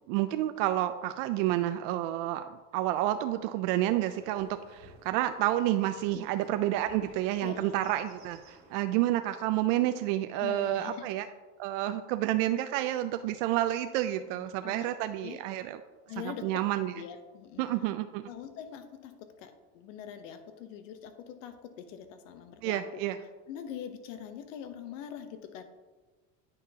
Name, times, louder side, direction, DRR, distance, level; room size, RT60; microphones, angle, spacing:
voice 1, 0.1-11.3 11.6-15.8 16.4-16.9 17.6-18.3 22.6-23.2, right 14 dB, 75° right, 9 dB, 0.5 m, -29 dB
sound 1, 3.9-9.0, right 2 dB, 45° right, 2.3 m, -56 dB
voice 2, 7.4-7.8 10.3-11.1 14.3-14.9 15.2-15.4 16.1-16.6 16.9-17.6 18.3-22.8 23.5-25.6, left 9 dB, 90° left, 9 dB, 0.9 m, -43 dB
9.0 x 5.8 x 2.8 m, 1.3 s
supercardioid pair, 135°, 37 cm